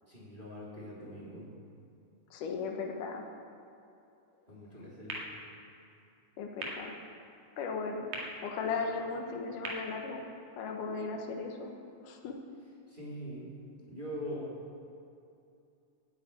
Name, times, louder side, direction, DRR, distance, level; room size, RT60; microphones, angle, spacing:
voice 1, 0.1-1.5 4.5-5.2 12.9-13.5 13.9-14.5, equal, 15° right, -7 dB, 2.9 m, -42 dB
voice 2, 2.3-3.2 6.4-7.0 7.6-8.1 8.4-10.2 10.5-11.7 12.0-12.3, left 4 dB, 80° left, 2 dB, 2.7 m, -36 dB
sound 1, 5.1-11.0, right 2 dB, 85° right, 3.7 m, -46 dB
12.5 x 9.0 x 9.1 m, 2.6 s
omnidirectional pair, 3.7 m